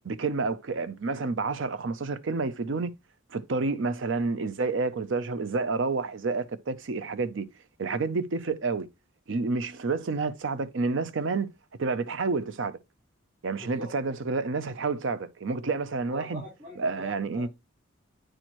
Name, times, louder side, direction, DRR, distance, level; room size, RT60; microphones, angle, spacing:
voice 1, 0.0-2.9 3.3-7.5 7.8-8.9 9.3-11.5 11.8-12.8 13.4-16.4 16.8-17.5, right 3 dB, 60° right, 0.6 m, -29 dB
voice 2, 13.6-14.2 16.1-17.5, left 1 dB, 40° right, 3.3 m, -43 dB
8.9 x 4.4 x 3.0 m
head